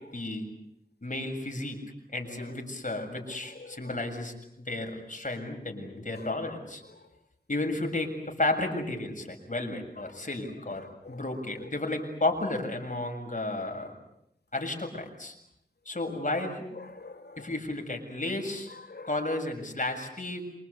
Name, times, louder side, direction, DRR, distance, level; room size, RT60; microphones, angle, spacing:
voice 1, 0.1-0.4 1.0-1.8 2.1-4.3 4.7-6.8 7.5-14.0 14.5-15.3 15.9-16.6 17.4-18.7 19.1-20.4, left 2 dB, 50° left, 7.3 m, -32 dB
voice 2, 2.9-4.0 6.1-6.3 6.8-7.1 10.0-10.2 10.7-11.7 16.4-17.5 18.7-19.1, left 3 dB, 70° left, 2.9 m, -48 dB
27.5 x 25.5 x 8.4 m
wide cardioid pair, 65°, 17 cm